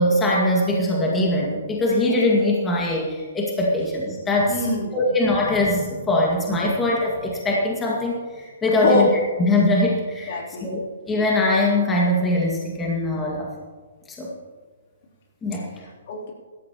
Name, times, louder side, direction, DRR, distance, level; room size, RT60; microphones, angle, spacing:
voice 1, 0.0-4.6 4.9-9.1 9.4-10.8 11.1-13.5 14.1-14.3 15.4-15.7, left 1 dB, 15° left, -3 dB, 2.2 m, -22 dB
voice 2, 4.5-5.1 8.8-9.1 10.3-10.7 15.8-16.3, left 2 dB, 55° left, -1 dB, 3.5 m, -24 dB
17.0 x 13.5 x 3.1 m, 1.4 s
hypercardioid pair, 140°, 0 cm